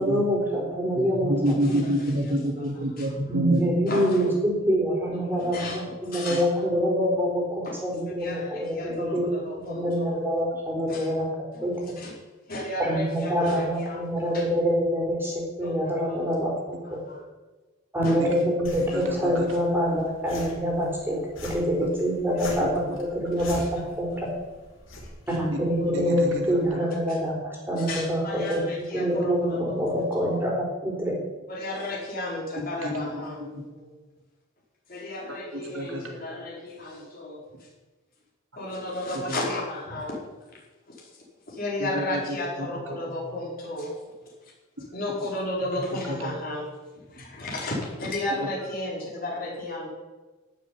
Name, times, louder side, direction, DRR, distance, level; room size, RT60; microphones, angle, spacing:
voice 1, 0.0-1.8 3.3-11.3 11.6-11.7 12.8-17.0 17.9-24.3 25.3-28.6 28.9-31.2, equal, 10° right, -2 dB, 4.4 m, -26 dB
voice 2, 0.9-3.7 6.3-6.4 18.2-18.4 18.9-19.5 25.9-26.8 32.6-33.1 33.5-33.6 35.5-36.2 39.3-39.4 41.8-42.4 42.7-43.0 45.9-46.3 47.2-47.3 48.4-48.7, equal, 70° right, 1 dB, 2.5 m, -29 dB
voice 3, 3.9-4.3 5.4-6.4 7.6-7.8 8.2-10.2 10.9-11.1 11.5-11.7 12.0-12.1 12.5-14.4 15.6-16.4 16.8-17.2 18.0-18.2 18.9-19.0 22.4-22.6 23.4-23.7 24.1-24.2 25.8-25.9 26.8-26.9 27.8-30.4 31.5-33.4 33.7-34.0 34.9-37.4 38.6-40.2 41.0-41.1 41.5-43.9 44.9-46.7 46.9-49.9, left 1 dB, 45° left, -4 dB, 5.0 m, -34 dB
sound 1, 18.6-26.6, left 1 dB, 70° left, 4.8 m, -43 dB
12.5 x 7.3 x 9.8 m, 1.2 s
head